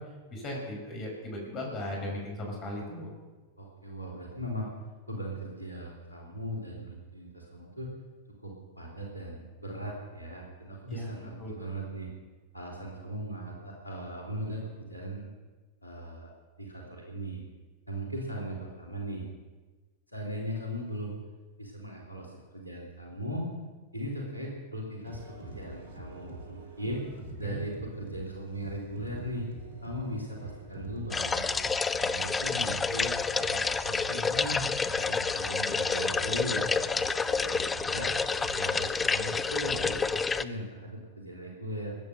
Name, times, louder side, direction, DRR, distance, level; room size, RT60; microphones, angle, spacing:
voice 1, 0.3-3.1 10.9-11.1 11.4-11.5 27.4-27.6, left 1 dB, 30° left, 0 dB, 5.2 m, -37 dB
voice 2, 3.6-4.7 5.1-7.9 8.4-12.1 12.5-15.3 15.8-16.3 16.6-17.4 17.9-19.3 20.1-21.2 21.6-23.5 23.9-27.1 27.4-29.5 29.8-31.5 32.0-36.7 37.2-38.1 38.5-41.9, equal, 85° left, -2 dB, 3.6 m, -38 dB
sound 1, 25.0-40.1, right 2 dB, 60° right, 3.1 m, -46 dB
sound 2, 31.1-40.4, left 4 dB, 15° left, 0.6 m, -29 dB
20.5 x 9.3 x 6.6 m, 1.3 s
figure-of-eight pair, 90°, 0 cm